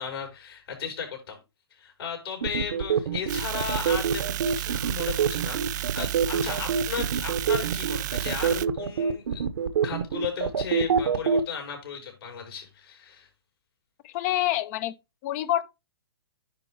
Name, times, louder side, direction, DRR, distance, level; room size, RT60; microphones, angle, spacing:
voice 1, 0.0-1.4 1.8-9.5 9.8-13.3, left 7 dB, 70° left, 4.9 m, -35 dB
sound 1, 2.4-11.4, right 7 dB, 70° right, 1.1 m, -25 dB
sound 2, 3.3-8.7, right 14 dB, 45° right, 0.4 m, -32 dB
voice 2, 14.0-14.9 15.2-15.6, left 14 dB, 40° left, 0.7 m, -26 dB
9.8 x 3.9 x 4.6 m
hypercardioid pair, 135°, 13 cm